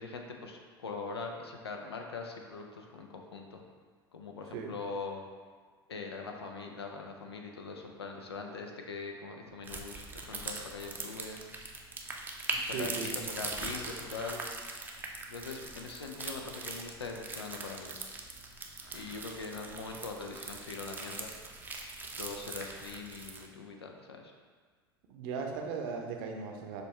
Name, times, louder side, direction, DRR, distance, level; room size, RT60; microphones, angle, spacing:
voice 1, 0.0-3.6 4.1-5.2 5.9-11.4 12.6-14.4 15.3-18.0 18.9-21.3 22.2-24.3, left 4 dB, 85° left, 2 dB, 0.5 m, -42 dB
sound 1, 9.6-23.5, right 3 dB, 15° right, 0.5 m, -41 dB
voice 2, 12.5-13.3 25.1-26.8, right 5 dB, 60° right, 2 dB, 0.6 m, -38 dB
6.6 x 2.3 x 3.1 m, 1.5 s
hypercardioid pair, 85°, 13 cm